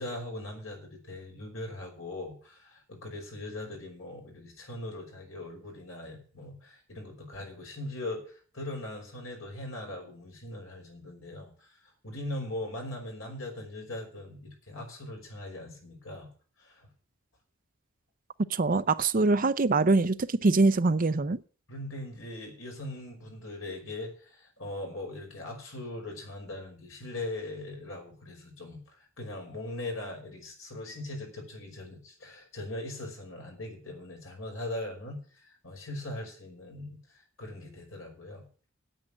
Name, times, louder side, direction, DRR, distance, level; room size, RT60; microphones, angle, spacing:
voice 1, 0.0-11.7 12.0-16.3 16.6-16.9 21.7-38.5, left 1 dB, 80° left, 5.5 m, -40 dB
voice 2, 18.5-21.4, right 3 dB, 45° right, 0.6 m, -24 dB
9.3 x 8.9 x 8.7 m
head